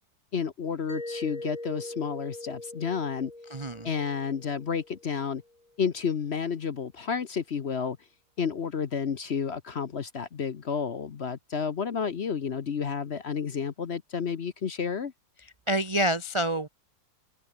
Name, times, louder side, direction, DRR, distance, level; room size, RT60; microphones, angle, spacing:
voice 1, 0.3-3.3 3.8-5.4 5.8-8.0 8.4-15.1, left 6 dB, 45° left, 0.9 m, -31 dB
Mallet percussion, 0.9-5.5, left 2 dB, 20° left, 3.2 m, -41 dB
voice 2, 3.5-3.9 15.4-16.7, right 1 dB, 50° right, 0.3 m, -28 dB
omnidirectional pair, 2.0 m